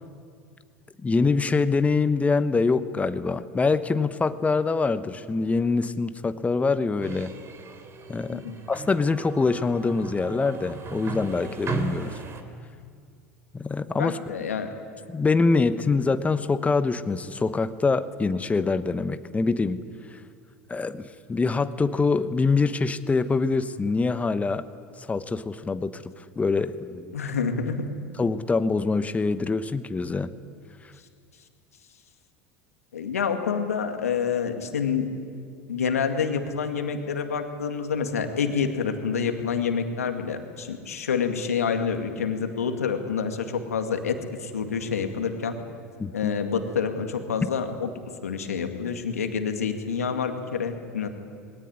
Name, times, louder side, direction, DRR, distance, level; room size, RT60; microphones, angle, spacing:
voice 1, 1.0-7.3 8.1-8.4 8.7-12.1 13.5-14.2 15.1-19.8 20.7-24.6 25.0-26.0 26.4-27.1 28.2-30.3 46.0-46.3 47.4-47.5, left 4 dB, 20° left, 12 dB, 1.1 m, -24 dB
sound 1, 7.0-12.4, right 4 dB, 35° right, 3.0 m, -36 dB
voice 2, 14.0-14.7 27.1-27.8 32.9-35.1 35.7-45.6 46.1-47.9 48.2-51.1, left 6 dB, 85° left, 6 dB, 2.1 m, -27 dB
21.0 x 18.0 x 9.9 m, 2.2 s
hypercardioid pair, 80°, 8 cm